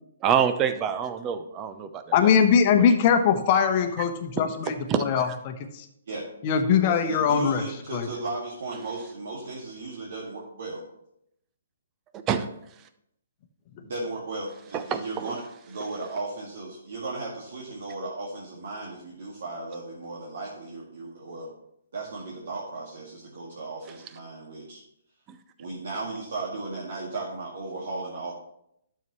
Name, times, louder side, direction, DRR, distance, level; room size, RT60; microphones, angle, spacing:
voice 1, 0.2-2.0 2.7-2.8 4.9-5.0 12.3-12.4 14.9-15.0, right 8 dB, 25° right, 10 dB, 0.7 m, -25 dB
voice 2, 2.1-5.8 6.4-7.6 7.9-8.1, left 7 dB, 40° left, 7 dB, 1.0 m, -22 dB
voice 3, 6.8-10.8 13.8-21.5 21.9-24.8 25.6-28.3, right 3 dB, 60° right, -4 dB, 2.0 m, -35 dB
12.0 x 6.9 x 3.1 m, 0.77 s
figure-of-eight pair, 130°, 0 cm